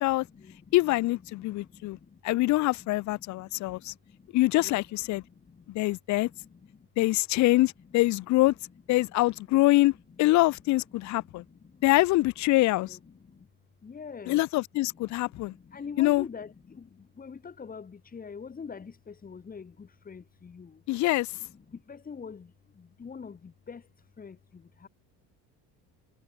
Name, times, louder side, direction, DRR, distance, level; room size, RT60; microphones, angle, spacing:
voice 1, 0.0-5.7 6.2-6.9 7.8-8.2 8.4-9.0 9.3-10.3 11.0-12.0 12.6-13.5 13.8-14.4 14.8-20.8 21.3-24.9, left 6 dB, 25° left, 5.0 m, -47 dB
voice 2, 0.7-2.0 2.2-3.9 4.3-5.2 5.7-6.3 7.0-8.5 8.9-9.9 10.2-11.4 11.8-13.0 14.3-15.5 16.0-16.2 20.9-21.3, left 18 dB, 55° left, 0.7 m, -24 dB
cardioid pair, 130°, 35 cm